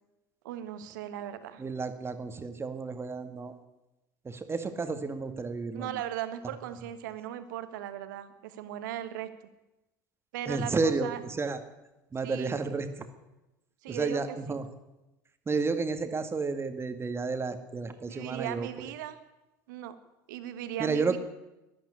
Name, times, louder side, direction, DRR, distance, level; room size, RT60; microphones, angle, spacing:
voice 1, 0.4-1.6 5.7-9.3 10.3-11.2 12.2-12.6 13.8-14.6 18.1-19.2 19.7-19.9 20.3-21.2, right 11 dB, 70° right, 11 dB, 1.5 m, -38 dB
voice 2, 1.6-3.5 4.3-5.9 10.5-11.1 11.4-11.6 12.1-12.9 13.9-14.6 15.5-18.7 20.8-21.2, right 4 dB, 25° right, 8 dB, 1.9 m, -31 dB
12.5 x 11.5 x 9.9 m, 0.98 s
hypercardioid pair, 70°, 10 cm